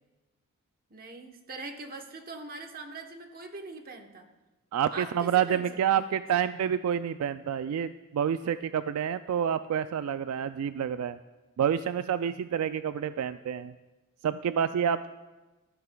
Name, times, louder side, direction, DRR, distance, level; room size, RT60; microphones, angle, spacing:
voice 1, 0.9-4.3 4.9-5.7 5.9-6.2, right 3 dB, 45° right, 4 dB, 1.0 m, -42 dB
voice 2, 4.7-11.2 11.6-13.7 14.2-15.1, right 8 dB, 75° right, 13 dB, 0.3 m, -28 dB
14.5 x 13.5 x 2.3 m, 1.1 s
head